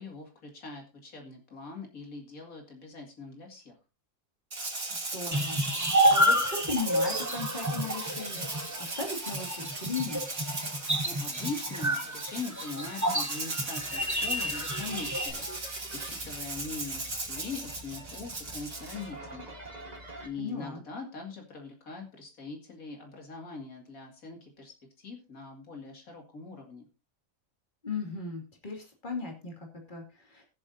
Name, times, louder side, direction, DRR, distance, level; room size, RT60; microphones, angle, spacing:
voice 1, 0.0-3.8 11.0-19.9 20.2-26.9, left 4 dB, 90° left, 2 dB, 2.8 m, -42 dB
Rattle (instrument), 4.5-19.0, right 2 dB, 75° right, 3.3 m, -38 dB
voice 2, 4.9-10.2 20.4-20.8 27.8-29.5 29.9-30.4, left 4 dB, 35° left, 1 dB, 2.7 m, -37 dB
sound 1, 5.3-15.3, equal, 15° right, 1.2 m, -29 dB
sound 2, 13.8-20.3, right 1 dB, 30° right, 1.7 m, -46 dB
21.5 x 7.3 x 2.7 m, 0.29 s
omnidirectional pair, 1.4 m